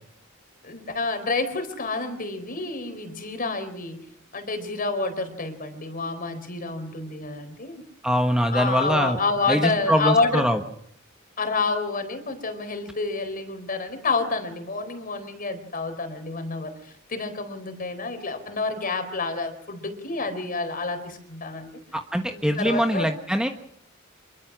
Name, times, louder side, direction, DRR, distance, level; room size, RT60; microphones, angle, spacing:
voice 1, 0.6-4.0 4.3-7.8 8.5-10.5 11.4-21.7 22.3-23.1, left 3 dB, 45° left, 8 dB, 4.0 m, -28 dB
voice 2, 8.0-9.2 9.5-10.6 21.9-23.5, equal, 5° right, 5 dB, 1.2 m, -23 dB
26.5 x 22.5 x 6.2 m, 0.67 s
head